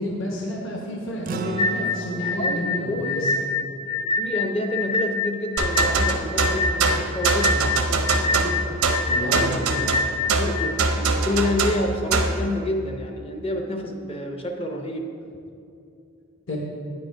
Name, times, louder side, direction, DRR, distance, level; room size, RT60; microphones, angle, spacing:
voice 1, 0.0-3.3 9.1-9.5 16.5-16.6, left 1 dB, 55° left, -2 dB, 1.0 m, -30 dB
sound 1, 1.2-5.9, right 3 dB, 40° right, 0.4 m, -38 dB
sound 2, 1.6-10.7, left 4 dB, 85° left, 0.7 m, -26 dB
voice 2, 2.4-3.2 4.2-8.8 9.2-9.9 10.4-15.1, left 1 dB, 25° left, 4 dB, 0.5 m, -29 dB
sound 3, 5.6-12.4, right 3 dB, 80° right, 0.7 m, -23 dB
8.9 x 5.3 x 4.5 m, 2.6 s
head